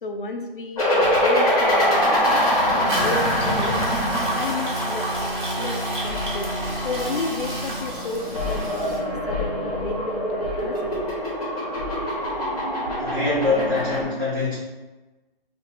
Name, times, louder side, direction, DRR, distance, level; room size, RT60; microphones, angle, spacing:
voice 1, 0.0-2.2 2.8-3.8 4.4-5.1 5.6-11.0, left 2 dB, 60° left, 4 dB, 0.5 m, -31 dB
sound 1, 0.8-14.0, equal, 40° left, 1.3 m, -24 dB
sound 2, 2.7-9.0, right 1 dB, 55° right, 1.2 m, -30 dB
voice 2, 12.9-14.6, left 3 dB, 25° right, -12 dB, 0.6 m, -24 dB
3.1 x 2.4 x 3.3 m, 1.1 s
hypercardioid pair, 170°, 29 cm